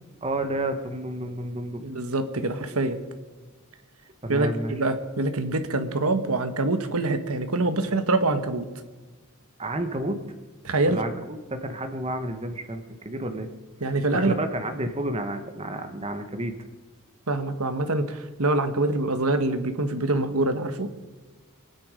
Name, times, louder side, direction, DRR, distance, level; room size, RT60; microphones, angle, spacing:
voice 1, 0.2-1.8 4.2-4.7 9.6-10.2 10.8-13.5 14.1-16.5, right 1 dB, 25° right, 7 dB, 1.2 m, -30 dB
voice 2, 1.8-3.0 4.3-8.7 10.6-11.0 13.8-14.4 17.3-20.9, right 2 dB, 80° right, 9 dB, 1.3 m, -25 dB
25.0 x 9.7 x 5.1 m, 1.3 s
head